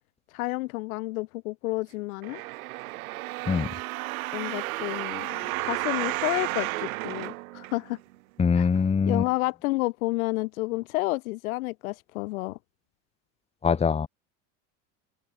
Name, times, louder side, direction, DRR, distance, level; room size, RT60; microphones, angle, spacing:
voice 1, 0.3-2.4 4.3-8.0 8.5-8.7 9.0-12.6, left 21 dB, 85° left, 1.4 m, -30 dB
sound 1, 2.2-8.1 8.7-8.8, right 20 dB, 85° right, 1.4 m, -33 dB
voice 2, 8.4-9.3 13.6-14.1, left 6 dB, 15° left, 1.0 m, -23 dB
open air
supercardioid pair, 115°, 41 cm